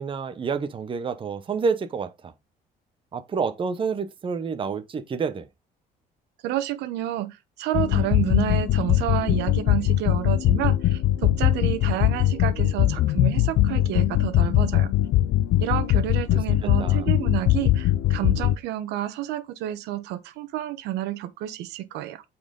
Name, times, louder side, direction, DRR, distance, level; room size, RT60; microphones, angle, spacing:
voice 1, 0.0-2.3 3.1-5.5 16.3-17.1, right 5 dB, 30° right, 0.9 m, -29 dB
voice 2, 6.4-14.9 15.6-22.2, right 13 dB, 85° right, 1.1 m, -30 dB
sound 1, 7.7-18.6, left 14 dB, 70° left, 0.5 m, -21 dB
8.6 x 4.4 x 3.8 m
cardioid pair, 110°, 17 cm